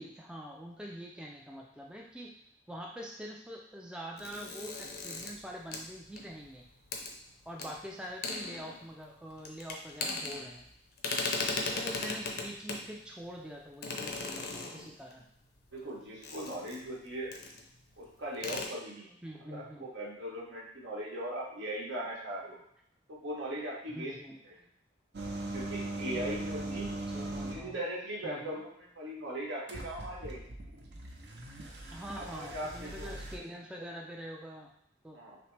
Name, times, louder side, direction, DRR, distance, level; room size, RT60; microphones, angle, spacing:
voice 1, 0.0-2.4 2.7-6.7 7.5-10.6 11.5-15.3 19.2-19.9 23.9-24.4 26.1-27.7 28.2-28.6 31.9-34.7 35.0-35.2, equal, 5° right, -1 dB, 0.3 m, -45 dB
sound 1, 4.2-6.5 6.9-7.1 7.6-7.7 8.0-9.0 9.4-10.7 11.0-12.9 13.8-15.1 16.2-17.0 17.3-17.6 17.9-18.0 18.3-18.7, left 3 dB, 50° left, 0.6 m, -37 dB
voice 2, 11.3-11.8 15.7-17.3 18.0-19.1 19.5-22.6 23.1-24.1 24.4-24.6 25.5-26.9 27.5-30.6 32.1-33.1 35.1-35.4, right 1 dB, 85° right, -5 dB, 1.3 m, -39 dB
sound 2, 25.1-27.7 29.7-33.4, right 2 dB, 55° right, 0.6 m, -40 dB
5.8 x 2.0 x 3.3 m, 0.73 s
head